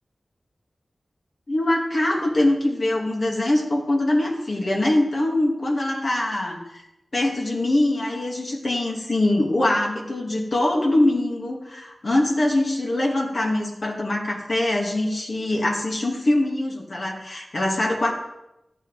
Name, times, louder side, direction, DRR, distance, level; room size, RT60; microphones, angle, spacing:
voice 1, 1.5-6.8 7.1-18.1, left 1 dB, 55° left, -1 dB, 2.7 m, -23 dB
12.5 x 9.0 x 5.1 m, 0.88 s
cardioid pair, 45°, 0 cm